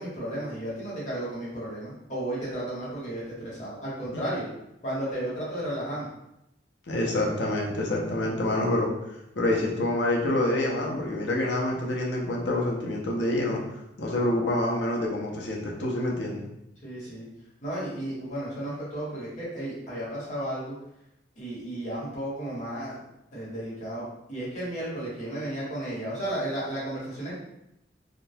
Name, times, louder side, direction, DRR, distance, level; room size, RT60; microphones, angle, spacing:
voice 1, 0.0-4.5 4.8-6.1 16.8-17.3 17.6-20.8 21.4-23.0 23.3-27.3, right 1 dB, 45° left, -7 dB, 1.3 m, -33 dB
voice 2, 6.9-8.9 9.4-13.6 14.0-16.4, left 1 dB, 90° left, -1 dB, 0.7 m, -27 dB
3.7 x 2.3 x 2.7 m, 0.84 s
head